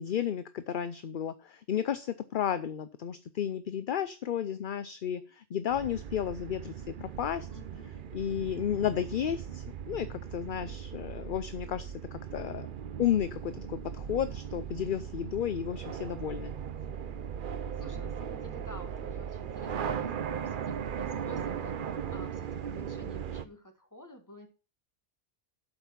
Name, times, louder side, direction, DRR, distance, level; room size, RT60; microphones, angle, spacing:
voice 1, 0.0-7.5 8.1-12.7 13.0-16.5, left 9 dB, 55° left, 12 dB, 0.7 m, -33 dB
sound 1, 5.7-23.4, right 8 dB, 55° right, 0.8 m, -38 dB
voice 2, 7.5-7.9 17.4-24.5, equal, 15° left, 4 dB, 2.1 m, -50 dB
12.0 x 5.4 x 5.7 m, 0.35 s
omnidirectional pair, 1.1 m